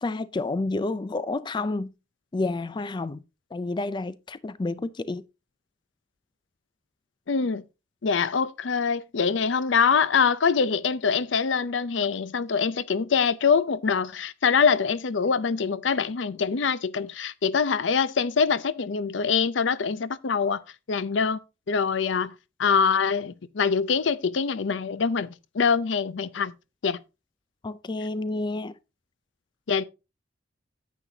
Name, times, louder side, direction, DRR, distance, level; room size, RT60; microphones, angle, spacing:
voice 1, 0.0-1.9 2.3-3.2 3.5-5.2 27.6-28.7, left 2 dB, 25° left, 0.4 m, -29 dB
voice 2, 7.3-7.6 8.0-20.6 20.9-21.4 21.7-22.3 22.6-25.3 25.5-26.5 26.8-27.0 29.7-29.8, left 6 dB, 70° left, 0.6 m, -24 dB
9.9 x 8.5 x 2.8 m
head